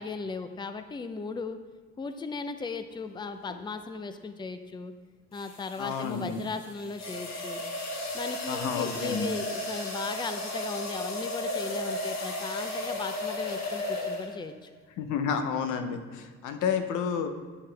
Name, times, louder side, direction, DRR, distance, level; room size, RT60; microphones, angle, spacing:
voice 1, 0.0-1.6 2.0-4.9 5.3-7.6 8.1-14.7, left 4 dB, 15° left, 8 dB, 0.4 m, -37 dB
sound 1, 3.4-3.7 5.4-14.6, left 1 dB, 60° left, 1.4 m, -35 dB
voice 2, 5.8-6.4 8.5-9.3 15.0-17.3, left 6 dB, 90° left, 7 dB, 0.7 m, -30 dB
8.0 x 5.6 x 3.3 m, 1.5 s
cardioid pair, 90°, 30 cm